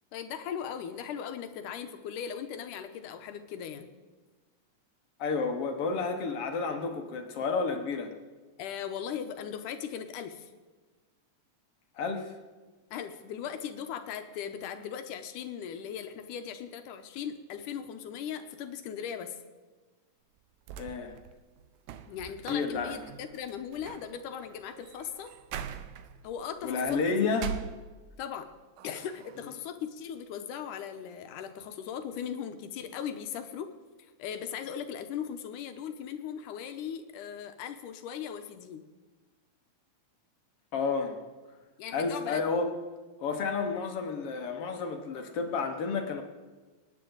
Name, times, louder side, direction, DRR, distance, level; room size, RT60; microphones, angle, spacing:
voice 1, 0.1-3.9 8.6-10.5 12.9-19.4 22.1-25.3 26.2-27.4 28.2-28.5 28.8-33.7 34.2-38.8 41.8-42.5, left 8 dB, 85° left, 8 dB, 2.5 m, -38 dB
voice 2, 5.2-8.1 12.0-12.3 20.8-21.1 22.5-23.0 26.6-27.5 40.7-41.2 41.9-42.7 43.2-46.2, left 4 dB, 55° left, 5 dB, 1.9 m, -31 dB
sound 1, 20.4-28.4 28.8-29.6, right 8 dB, 90° right, 2.3 m, -44 dB
26.0 x 9.9 x 3.9 m, 1.3 s
omnidirectional pair, 3.6 m